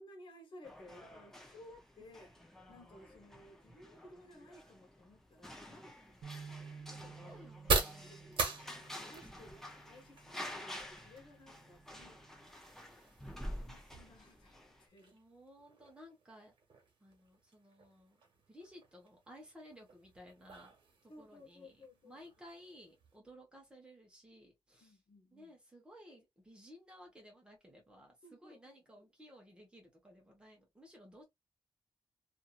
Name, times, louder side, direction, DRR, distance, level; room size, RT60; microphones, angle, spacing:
voice 1, 0.0-2.3 2.7-6.2 6.6-7.3 8.0-8.6 9.0-12.4 13.3-15.2 21.1-22.2 24.8-25.5 28.2-29.0, left 1 dB, 65° left, 1.1 m, -58 dB
sound 1, 0.6-14.9, equal, 5° left, 0.6 m, -50 dB
sound 2, 5.6-23.2, right 3 dB, 65° right, 1.3 m, -43 dB
sound 3, 6.2-12.5, right 5 dB, 85° right, 0.5 m, -54 dB
voice 2, 6.9-8.3 12.7-13.1 15.1-16.5 17.0-18.2 18.5-20.7 21.0-25.0 25.3-31.2, equal, 10° right, 1.1 m, -57 dB
2.8 x 2.6 x 2.3 m
wide cardioid pair, 180°, 9 cm